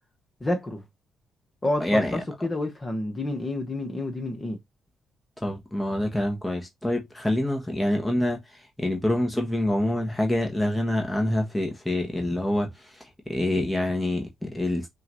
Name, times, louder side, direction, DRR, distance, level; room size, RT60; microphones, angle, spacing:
voice 1, 0.4-0.8 1.6-4.6, left 1 dB, 25° left, 1.6 m, -29 dB
voice 2, 1.8-2.2 5.4-13.0 13.3-14.9, left 1 dB, 10° left, 1.4 m, -26 dB
5.5 x 2.7 x 3.0 m
supercardioid pair, 75°, 0 cm